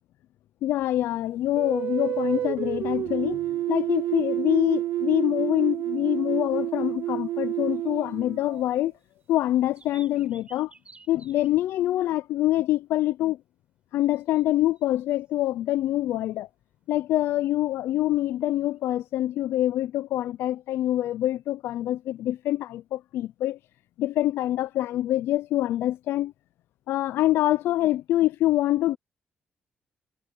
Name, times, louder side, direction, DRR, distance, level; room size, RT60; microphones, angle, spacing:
voice 1, 0.6-8.9 9.3-10.7 11.1-13.4 13.9-16.5 16.9-23.6 24.0-26.3 26.9-29.0, left 14 dB, 90° left, 0.5 m, -25 dB
sound 1, 1.6-8.9, right 13 dB, 80° right, 0.6 m, -29 dB
sound 2, 8.5-9.0 9.4-11.6 11.9-12.0 14.1-14.4 14.8-15.5 18.7-18.8, right 3 dB, 30° right, 5.4 m, -53 dB
cardioid pair, 75°, 4 cm